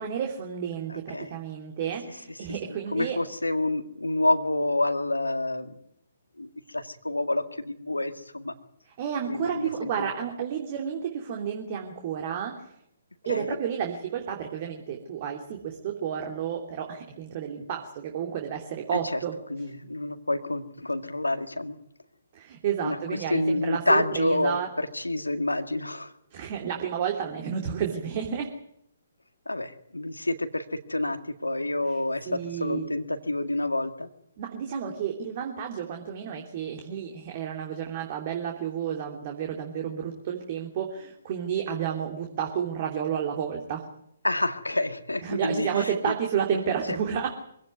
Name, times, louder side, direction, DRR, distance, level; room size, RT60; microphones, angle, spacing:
voice 1, 0.0-3.2 9.0-12.7 13.2-19.3 22.3-24.7 26.3-28.5 32.2-32.9 34.4-43.8 45.2-47.3, right 8 dB, 35° right, 2 dB, 3.0 m, -31 dB
voice 2, 0.9-1.4 2.0-2.1 2.7-5.8 6.4-8.5 9.3-10.1 13.3-13.6 18.9-19.2 19.5-21.8 22.8-26.1 29.5-34.1 44.2-45.9 46.9-47.0, left 2 dB, 80° left, 8 dB, 1.9 m, -28 dB
24.5 x 17.0 x 9.4 m, 0.75 s
figure-of-eight pair, 130°, 0 cm